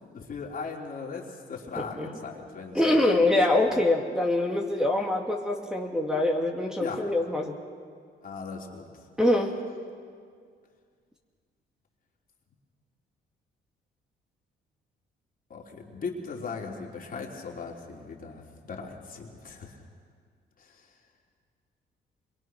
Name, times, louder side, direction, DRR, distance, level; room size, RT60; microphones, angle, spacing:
voice 1, 0.0-3.1 6.8-7.0 8.2-8.9 15.5-19.7 20.6-20.9, left 4 dB, 45° left, 0 dB, 3.5 m, -38 dB
voice 2, 1.7-2.2 2.7-7.5 9.2-9.6, left 1 dB, 5° right, 1 dB, 2.5 m, -24 dB
26.0 x 22.5 x 6.3 m, 2.1 s
cardioid pair, 90°, 20 cm